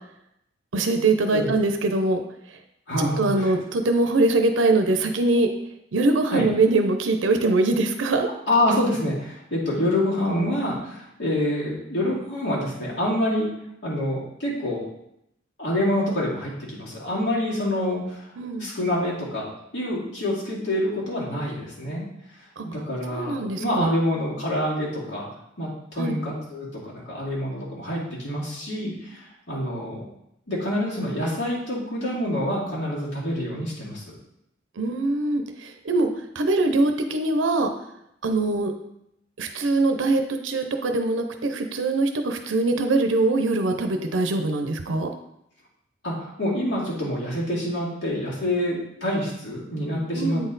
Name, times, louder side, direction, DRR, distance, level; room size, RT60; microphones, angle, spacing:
voice 1, 0.7-2.2 3.2-5.5 5.9-8.3 18.4-18.7 22.6-22.7 23.1-23.9 26.0-26.2 34.8-36.1 36.3-37.7 38.2-38.7 39.4-45.1 50.2-50.5, right 2 dB, 90° right, 5 dB, 0.6 m, -22 dB
voice 2, 2.9-3.5 6.3-6.4 8.5-13.5 13.8-14.8 15.6-18.2 18.6-19.5 19.7-22.0 22.6-25.3 25.6-30.0 30.5-34.1 46.0-50.5, left 1 dB, 70° left, -6 dB, 2.4 m, -26 dB
8.3 x 4.2 x 3.9 m, 0.79 s
head